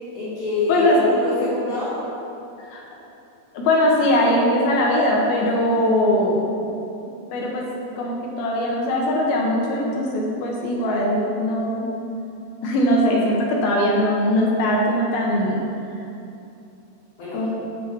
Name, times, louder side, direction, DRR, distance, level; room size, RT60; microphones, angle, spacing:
voice 1, 0.1-2.0 17.2-17.5, left 2 dB, 50° left, -10 dB, 2.9 m, -25 dB
voice 2, 0.7-1.1 2.7-2.8 3.5-6.6 7.3-11.9 12.6-15.7 17.3-17.5, left 1 dB, 70° left, -2 dB, 2.7 m, -21 dB
9.4 x 6.3 x 6.8 m, 2.7 s
omnidirectional pair, 5.0 m